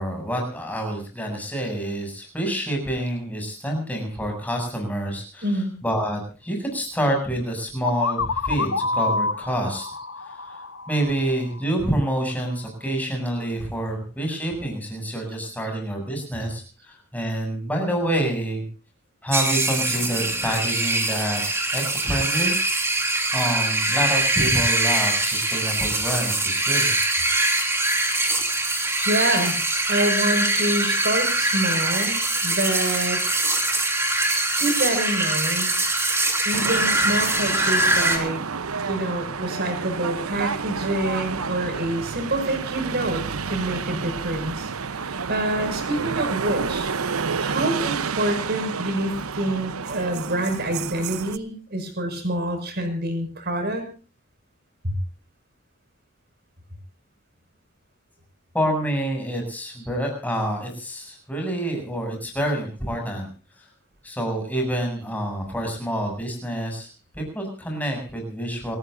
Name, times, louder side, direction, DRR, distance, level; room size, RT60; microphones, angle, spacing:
voice 1, 0.0-5.5 5.8-9.9 10.2-10.6 10.9-18.6 19.2-22.5 23.3-27.0 58.5-63.3 63.6-63.7 64.0-66.9 67.1-68.8, right 1 dB, 5° left, 2 dB, 7.5 m, -27 dB
voice 2, 5.4-5.7 29.0-29.6 29.9-33.2 34.5-35.7 36.4-38.4 38.8-46.9 47.4-53.8 54.8-54.9, right 1 dB, 50° right, 7 dB, 5.9 m, -27 dB
sound 1, 7.8-11.6, left 3 dB, 65° left, 1.2 m, -27 dB
sound 2, 19.3-38.2, right 2 dB, 10° right, 3.1 m, -23 dB
sound 3, 36.5-51.4, right 5 dB, 85° right, 0.9 m, -30 dB
29.0 x 14.5 x 2.6 m, 0.37 s
head